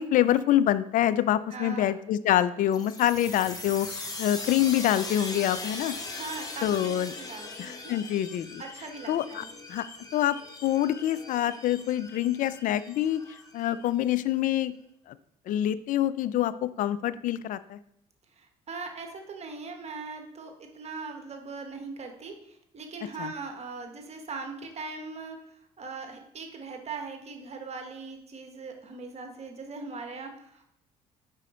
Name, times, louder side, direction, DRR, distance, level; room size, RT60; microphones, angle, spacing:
voice 1, 0.0-5.9 6.6-7.1 7.6-8.6 9.1-9.4 9.7-9.8 10.1-13.2 13.5-14.7 15.1-15.2 15.5-17.8 23.2-23.3, left 12 dB, 60° left, 15 dB, 0.4 m, -26 dB
voice 2, 1.5-1.9 6.1-8.0 8.6-9.5 18.4-25.4 25.8-30.7, right 4 dB, 45° right, 4 dB, 1.2 m, -40 dB
sound 1, 2.7-14.1, left 3 dB, 25° left, 1.2 m, -40 dB
5.0 x 4.8 x 4.3 m, 0.75 s
supercardioid pair, 65°, 15 cm